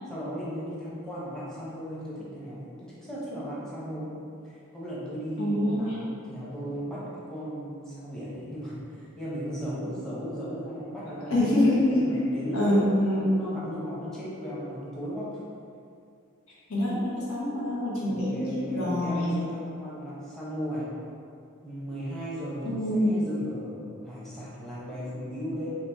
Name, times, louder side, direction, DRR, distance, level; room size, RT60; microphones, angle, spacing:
voice 1, 0.1-4.1 4.4-7.0 7.3-11.6 12.0-15.4 18.0-20.8 21.6-25.7, equal, 5° left, -9 dB, 0.9 m, -36 dB
voice 2, 5.4-5.9 11.3-12.1 12.5-13.3 16.7-19.4 22.6-23.2, left 1 dB, 80° left, -7 dB, 1.3 m, -25 dB
4.6 x 3.0 x 3.5 m, 2.4 s
head